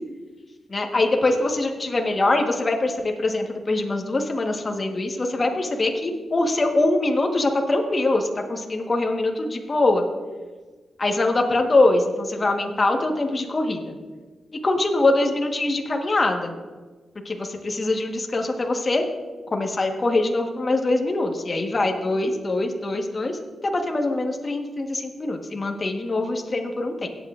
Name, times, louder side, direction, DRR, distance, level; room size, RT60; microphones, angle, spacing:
voice 1, 0.7-10.0 11.0-13.9 14.6-16.5 17.3-17.4 17.6-19.0 19.5-27.1, left 2 dB, 35° left, 3 dB, 1.3 m, -23 dB
17.0 x 8.2 x 2.5 m, 1.3 s
cardioid pair, 75°, 0 cm